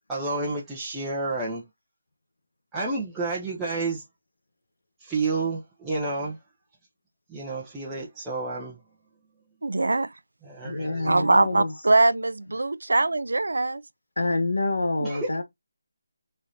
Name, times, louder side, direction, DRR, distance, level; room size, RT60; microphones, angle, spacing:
voice 1, 0.1-1.6 2.7-4.0 5.0-6.4 7.3-8.8 10.4-11.1 15.0-15.3, right 3 dB, 5° right, 0.7 m, -30 dB
voice 2, 9.6-10.1 11.0-13.8, right 2 dB, 85° right, 0.4 m, -22 dB
voice 3, 10.6-11.7 14.2-15.4, left 2 dB, 85° left, 1.4 m, -27 dB
3.9 x 3.2 x 2.7 m
figure-of-eight pair, 170°, 0 cm